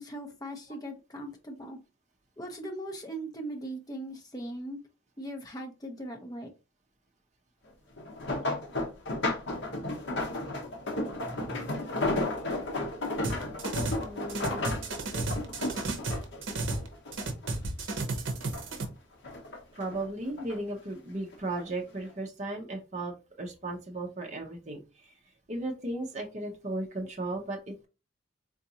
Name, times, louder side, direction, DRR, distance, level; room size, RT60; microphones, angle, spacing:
voice 1, 0.0-1.8 2.4-4.8 5.2-6.5, right 1 dB, 20° left, 2 dB, 0.6 m, -39 dB
sound 1, 8.0-17.5 17.9-18.8 19.2-20.6 21.3-21.6 22.0-22.1, left 2 dB, 60° left, 0.8 m, -33 dB
voice 2, 11.2-11.7 14.0-14.8 19.7-23.1 23.4-24.8 25.5-27.9, right 2 dB, 35° right, 1 dB, 0.7 m, -36 dB
sound 2, 13.2-14.0 14.3-16.9 17.1-18.8, right 2 dB, 70° right, 0.7 m, -33 dB
3.9 x 2.5 x 2.7 m, 0.29 s
head